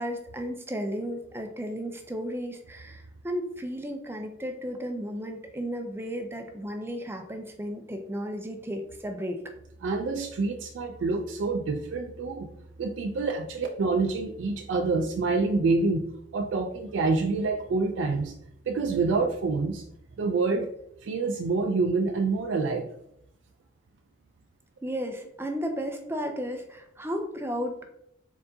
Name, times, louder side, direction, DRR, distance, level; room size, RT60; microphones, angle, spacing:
voice 1, 0.0-9.4 24.8-27.8, equal, 10° right, 4 dB, 0.4 m, -34 dB
voice 2, 9.8-12.5 12.8-16.0 16.3-18.3 18.7-19.9 20.2-20.7 21.0-22.9, right 3 dB, 85° right, 4 dB, 0.4 m, -27 dB
4.4 x 3.8 x 2.7 m, 0.76 s
head